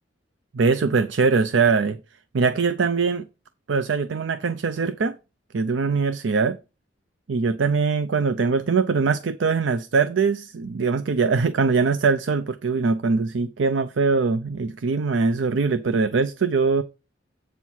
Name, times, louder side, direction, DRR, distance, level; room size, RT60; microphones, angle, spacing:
voice 1, 0.5-2.0 2.3-3.3 3.7-5.2 5.5-6.6 7.3-16.8, right 4 dB, 85° right, 0.5 m, -22 dB
8.1 x 4.6 x 5.6 m
head